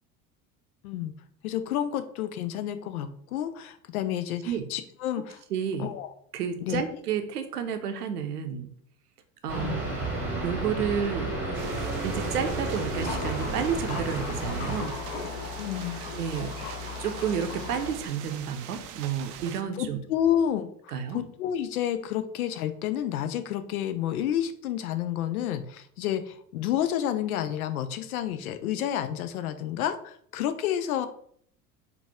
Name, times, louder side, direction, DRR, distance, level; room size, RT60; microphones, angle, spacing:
voice 1, 1.4-5.4 5.8-6.1 6.6-6.8 9.5-9.8 15.6-16.0 19.8-31.1, left 10 dB, 70° left, 10 dB, 0.5 m, -30 dB
voice 2, 5.5-5.9 6.3-8.7 9.4-9.8 10.4-11.3 12.0-15.0 16.2-16.5 17.0-20.0 20.9-21.2, right 7 dB, 75° right, 7 dB, 0.7 m, -31 dB
sound 1, 9.5-14.8, right 2 dB, 5° right, 1.2 m, -32 dB
sound 2, 11.5-19.6, right 9 dB, 40° right, 0.4 m, -43 dB
Thunder, 13.0-18.0, left 4 dB, 35° left, 0.7 m, -36 dB
3.9 x 2.3 x 3.5 m, 0.63 s
figure-of-eight pair, 70°, 47 cm